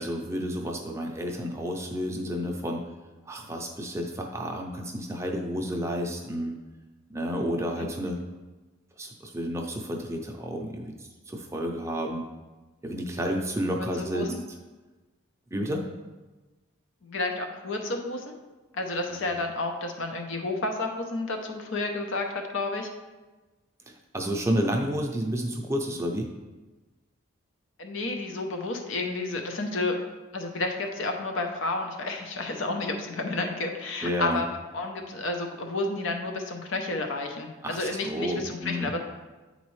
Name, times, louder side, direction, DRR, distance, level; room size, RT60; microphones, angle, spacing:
voice 1, 0.0-2.8 3.3-6.6 7.1-8.2 9.0-12.2 12.8-14.4 15.5-15.8 19.2-19.3 23.9-26.3 34.0-34.4 37.6-38.9, equal, 15° right, 1 dB, 0.5 m, -31 dB
voice 2, 14.0-14.4 17.0-18.2 18.7-22.9 27.8-30.0 30.3-34.4 34.7-39.0, left 2 dB, 70° left, 4 dB, 0.7 m, -31 dB
9.3 x 4.0 x 3.2 m, 1.2 s
head